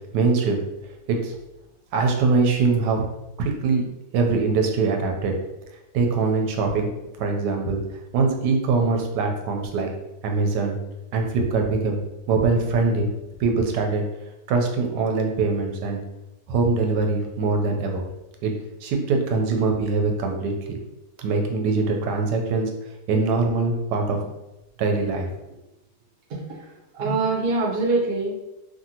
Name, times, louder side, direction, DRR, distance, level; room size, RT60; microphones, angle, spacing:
voice 1, 0.1-0.6 1.1-1.3 1.9-3.1 3.4-3.8 4.1-5.3 5.9-6.9 7.2-7.8 8.1-9.9 10.2-10.8 11.1-12.0 12.3-13.1 13.4-14.0 14.5-16.0 16.5-18.0 18.4-18.5 18.8-20.8 21.2-22.7 23.1-24.3 24.8-25.3, right 4 dB, 90° right, 2 dB, 1.2 m, -22 dB
voice 2, 26.3-26.7 26.9-28.3, right 3 dB, 55° right, -2 dB, 0.7 m, -24 dB
2.9 x 2.6 x 2.7 m, 0.95 s
omnidirectional pair, 1.8 m